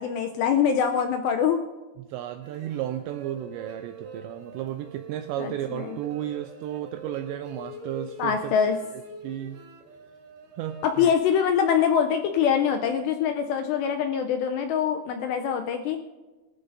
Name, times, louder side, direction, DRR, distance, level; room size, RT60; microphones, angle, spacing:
voice 1, 0.0-1.6 5.4-6.0 8.2-8.8 10.8-16.0, left 7 dB, 85° left, 6 dB, 2.5 m, -24 dB
voice 2, 2.0-8.5 8.9-9.6 10.6-11.1, right 12 dB, 85° right, 8 dB, 2.5 m, -33 dB
sound 1, 2.4-11.2, right 3 dB, 65° right, 3.2 m, -44 dB
20.5 x 13.0 x 2.7 m, 1.2 s
omnidirectional pair, 5.6 m